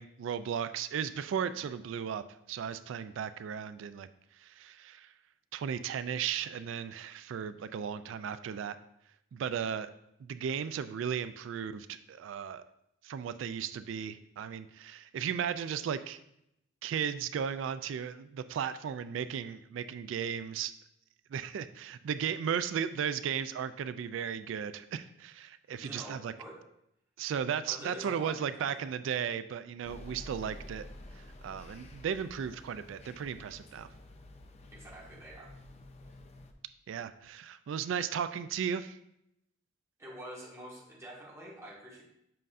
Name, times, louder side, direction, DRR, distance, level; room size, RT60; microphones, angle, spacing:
voice 1, 0.0-4.1 4.4-5.1 5.5-8.8 9.3-9.9 10.2-12.6 13.0-16.2 16.8-20.7 21.3-26.3 27.2-30.8 31.2-33.9 36.9-39.0, right 8 dB, 75° right, 12 dB, 0.3 m, -35 dB
voice 2, 25.8-26.6 27.7-29.0 34.7-35.5 40.0-42.0, equal, 15° right, -5 dB, 1.5 m, -47 dB
sound 1, 29.8-36.5, left 1 dB, 35° left, 0.5 m, -50 dB
7.7 x 5.3 x 2.5 m, 0.78 s
head